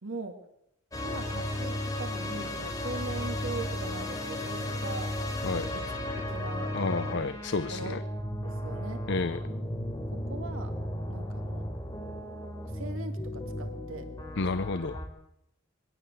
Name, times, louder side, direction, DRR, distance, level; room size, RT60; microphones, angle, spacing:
voice 1, 0.0-0.4 1.0-5.2 5.5-5.8 6.2-6.7 7.0-7.2 7.7-8.0 8.4-9.0 10.1-10.7 11.1-11.6 12.6-14.1, right 3 dB, 75° right, 6 dB, 2.1 m, -41 dB
sound 1, 0.9-15.1, left 1 dB, 15° left, 4.1 m, -34 dB
voice 2, 6.7-8.0 9.1-9.4 14.4-15.0, left 3 dB, 55° left, 12 dB, 0.7 m, -30 dB
22.0 x 17.0 x 7.8 m, 0.79 s
head